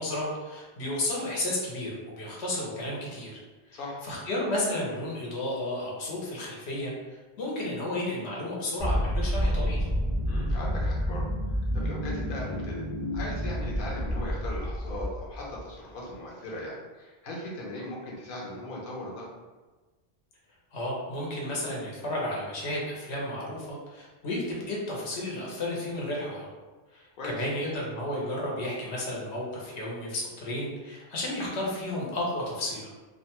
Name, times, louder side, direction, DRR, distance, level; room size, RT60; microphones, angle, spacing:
voice 1, 0.0-3.3 3.7-6.9 7.4-9.9 20.7-26.5 26.9-32.9, left 1 dB, 80° left, -4 dB, 1.0 m, -32 dB
voice 2, 3.7-4.0 10.3-12.8 13.1-19.3 27.2-27.3, left 1 dB, 55° left, -3 dB, 0.8 m, -38 dB
sound 1, 8.8-15.6, equal, 5° left, 0.5 m, -29 dB
2.5 x 2.2 x 2.9 m, 1.3 s
omnidirectional pair, 1.1 m